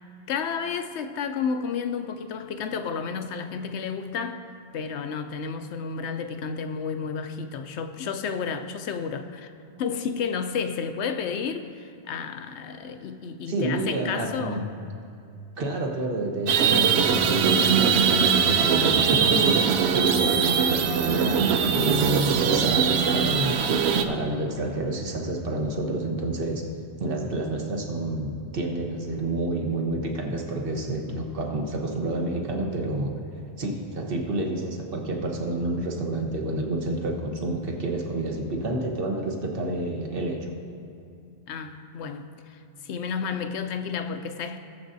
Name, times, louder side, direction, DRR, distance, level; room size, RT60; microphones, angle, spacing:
voice 1, 0.3-4.4 4.7-9.5 9.8-14.8 41.5-44.6, left 6 dB, 80° left, 0.9 m, -31 dB
voice 2, 13.5-14.7 15.6-19.7 19.9-23.6 24.0-26.7 27.0-33.1 33.6-40.5, right 1 dB, 55° right, 1.3 m, -29 dB
sound 1, 16.5-24.0, right 7 dB, 70° right, 0.9 m, -21 dB
19.0 x 7.4 x 2.7 m
omnidirectional pair, 1.1 m